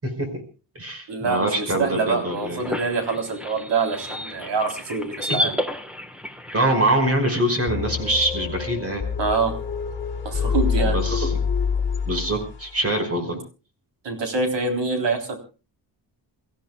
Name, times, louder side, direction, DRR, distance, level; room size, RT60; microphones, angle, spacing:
voice 1, 0.0-0.4 0.8-2.6 5.4-5.5 6.5-9.0 10.8-11.3 12.1-13.4, right 1 dB, 30° right, 6 dB, 5.2 m, -24 dB
voice 2, 1.1-5.6 9.2-9.5 10.2-11.0 14.0-15.4, right 4 dB, 75° right, 5 dB, 3.7 m, -25 dB
sound 1, 1.9-7.4, equal, ahead, 1.3 m, -32 dB
sound 2, 7.7-12.7, left 6 dB, 25° left, 3.1 m, -26 dB
29.5 x 15.5 x 2.3 m, 0.33 s
wide cardioid pair, 160°, 44 cm